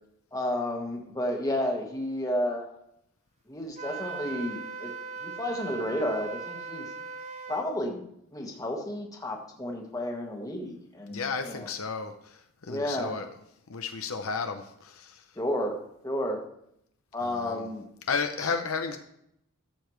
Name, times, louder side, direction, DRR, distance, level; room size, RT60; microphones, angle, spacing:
voice 1, 0.3-2.7 3.5-4.9 5.2-6.8 7.5-11.7 12.7-13.2 15.3-15.8 16.0-16.4 17.1-17.8 18.4-18.5, left 1 dB, 15° left, 2 dB, 1.4 m, -32 dB
Wind instrument woodwind instrument, 3.8-7.7, right 5 dB, 30° right, 0.5 m, -39 dB
voice 2, 11.1-13.3 13.7-15.2 17.2-17.7 18.1-19.0, left 5 dB, 70° left, 6 dB, 0.8 m, -33 dB
13.5 x 7.0 x 3.2 m, 0.75 s
head